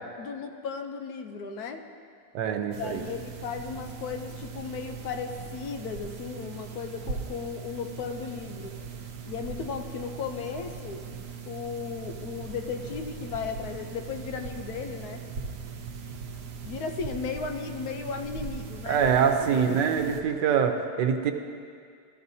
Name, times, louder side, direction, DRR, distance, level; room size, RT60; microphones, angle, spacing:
voice 1, 0.2-1.9 2.8-8.8 9.2-11.1 11.5-15.2 16.6-19.0 19.5-19.6, left 6 dB, 70° left, 6 dB, 1.1 m, -35 dB
voice 2, 2.3-3.1 18.9-21.3, right 7 dB, 90° right, 6 dB, 1.4 m, -24 dB
sound 1, 2.7-20.2, right 5 dB, 65° right, 1.2 m, -40 dB
14.0 x 13.5 x 2.7 m, 2.2 s
omnidirectional pair, 1.8 m